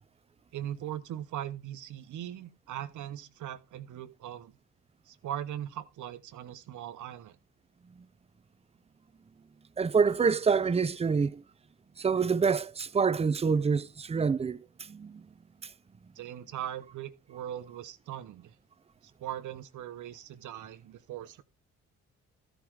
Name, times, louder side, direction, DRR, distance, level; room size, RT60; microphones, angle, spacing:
voice 1, 0.5-4.5 5.1-7.4 16.1-18.6 19.0-21.4, right 11 dB, 75° right, 1.1 m, -40 dB
voice 2, 9.8-11.4 12.0-14.6 14.9-15.2, right 5 dB, 20° right, 0.5 m, -26 dB
13.5 x 5.1 x 4.7 m
cardioid pair, 90°, 30 cm